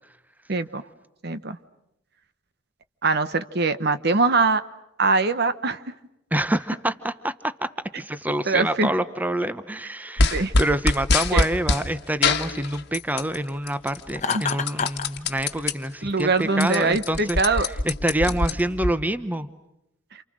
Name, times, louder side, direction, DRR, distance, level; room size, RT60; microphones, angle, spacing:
voice 1, 0.5-0.8 1.2-1.6 3.0-4.6 5.0-5.8 8.5-8.9 10.3-10.5 11.3-11.5 14.3-14.4 16.0-17.7, right 3 dB, 55° right, 12 dB, 1.1 m, -22 dB
voice 2, 6.3-7.7 8.0-19.5, right 1 dB, 10° right, 11 dB, 0.9 m, -27 dB
sound 1, 10.2-11.8 12.2-13.4 13.7-15.7 16.2-16.3 16.5-18.9, left 3 dB, 55° left, 1.4 m, -23 dB
Laughter, 14.2-15.1, left 5 dB, 35° left, 1.1 m, -27 dB
29.0 x 28.5 x 6.3 m, 0.84 s
head